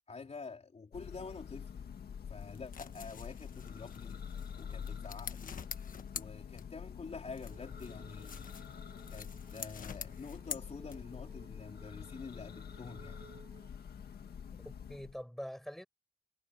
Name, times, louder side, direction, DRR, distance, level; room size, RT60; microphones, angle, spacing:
voice 1, 0.1-1.9 2.3-4.2 4.6-5.6 6.1-8.5 9.1-13.2, left 4 dB, 45° left, 3.7 m, -47 dB
Church bell, 0.9-15.2, left 7 dB, 80° left, 1.9 m, -47 dB
sound 1, 2.4-7.0 7.3-11.3, left 7 dB, 60° left, 1.3 m, -47 dB
sound 2, 7.4-13.7, right 5 dB, 50° right, 7.1 m, -60 dB
voice 2, 14.5-15.9, equal, ahead, 6.8 m, -45 dB
wide cardioid pair, 110°, 16 cm